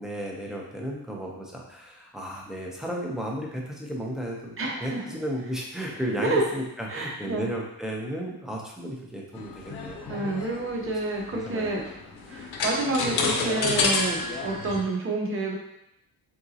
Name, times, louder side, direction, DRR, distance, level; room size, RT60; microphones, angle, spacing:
voice 1, 0.0-10.4 11.3-11.8, equal, ahead, -2 dB, 0.5 m, -34 dB
voice 2, 4.6-5.0 6.2-6.4 6.9-7.4 10.1-11.9 12.3-15.6, right 2 dB, 35° right, 0 dB, 0.7 m, -28 dB
sound 1, 9.4-14.8, left 4 dB, 70° left, 0.7 m, -29 dB
4.0 x 3.5 x 2.7 m, 0.79 s
wide cardioid pair, 170°, 39 cm